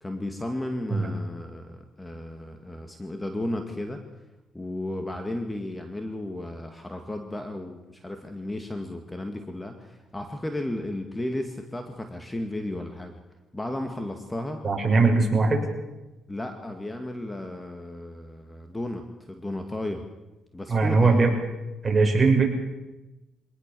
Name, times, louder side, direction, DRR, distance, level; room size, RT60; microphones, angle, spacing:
voice 1, 0.0-4.0 4.5-13.2 13.5-14.6 16.3-20.0 20.5-21.2, left 1 dB, 15° left, 5 dB, 2.3 m, -34 dB
voice 2, 14.6-15.6 20.7-21.3 21.8-22.5, right 3 dB, 25° right, 1 dB, 6.5 m, -20 dB
24.5 x 19.0 x 7.1 m, 1.0 s
cardioid pair, 90°, 0 cm